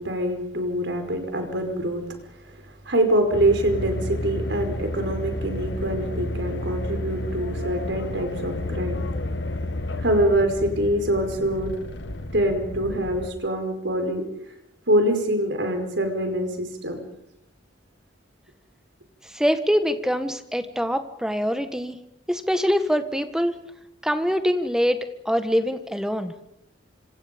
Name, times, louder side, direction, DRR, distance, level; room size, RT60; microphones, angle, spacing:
voice 1, 0.0-2.0 2.5-9.0 10.0-11.7 12.3-14.3 14.9-17.0, right 1 dB, 65° right, 5 dB, 5.1 m, -24 dB
sound 1, 3.3-13.3, left 1 dB, 65° left, 1.5 m, -31 dB
voice 2, 19.3-22.0 22.3-23.6 24.0-26.3, equal, 5° right, 9 dB, 1.6 m, -24 dB
26.0 x 26.0 x 5.3 m, 0.78 s
head